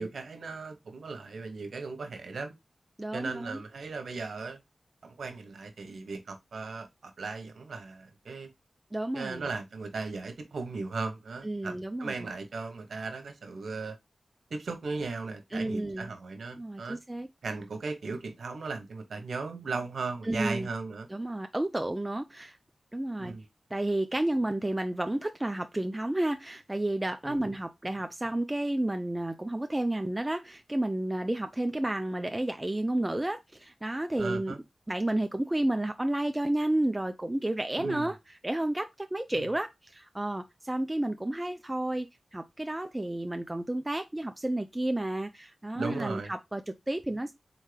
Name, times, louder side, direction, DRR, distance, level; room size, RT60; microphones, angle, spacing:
voice 1, 0.0-2.5 3.1-4.6 5.0-8.5 9.1-13.9 14.5-17.0 17.4-21.1 23.2-23.5 27.3-27.5 34.2-34.6 37.8-38.1 39.3-39.4 45.8-46.3, right 4 dB, 85° right, 1.0 m, -37 dB
voice 2, 3.0-3.6 8.9-9.5 11.4-12.3 15.5-16.1 16.5-17.3 20.2-20.7 21.1-22.6 22.9-23.3 23.7-34.6 34.9-38.2 38.4-47.3, right 1 dB, 20° right, 0.4 m, -31 dB
4.1 x 3.6 x 3.3 m
cardioid pair, 60°, 0 cm